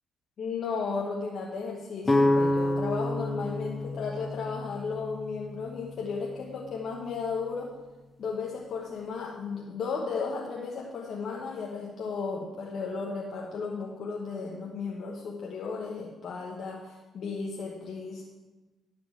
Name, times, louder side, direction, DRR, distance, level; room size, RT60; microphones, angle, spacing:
voice 1, 0.4-7.7 8.2-18.2, left 5 dB, 60° left, -2 dB, 1.3 m, -34 dB
sound 1, 2.1-5.9, left 1 dB, 20° left, 0.9 m, -28 dB
10.5 x 4.9 x 7.6 m, 1.2 s
cardioid pair, 90°, 0 cm